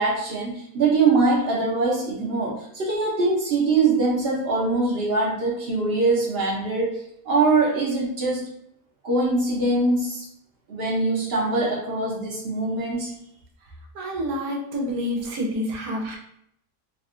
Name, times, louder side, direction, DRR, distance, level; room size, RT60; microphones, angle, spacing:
voice 1, 0.0-8.4 9.0-10.2 10.7-13.1, right 3 dB, 55° right, -3 dB, 0.7 m, -23 dB
voice 2, 13.9-16.2, equal, 80° right, 1 dB, 1.2 m, -28 dB
3.4 x 2.2 x 2.4 m, 0.71 s
omnidirectional pair, 1.6 m